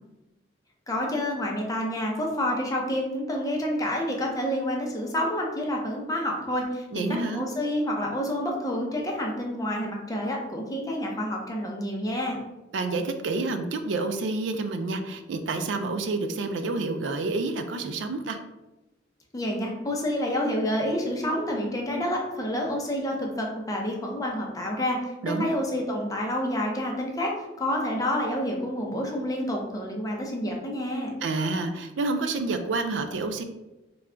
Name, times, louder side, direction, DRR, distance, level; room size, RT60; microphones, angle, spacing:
voice 1, 0.9-12.4 19.3-31.1, left 1 dB, 20° left, 0 dB, 0.6 m, -28 dB
voice 2, 6.9-7.5 12.7-18.4 25.2-25.5 31.2-33.4, right 3 dB, 80° right, 7 dB, 0.4 m, -29 dB
3.3 x 2.3 x 3.7 m, 1.0 s
head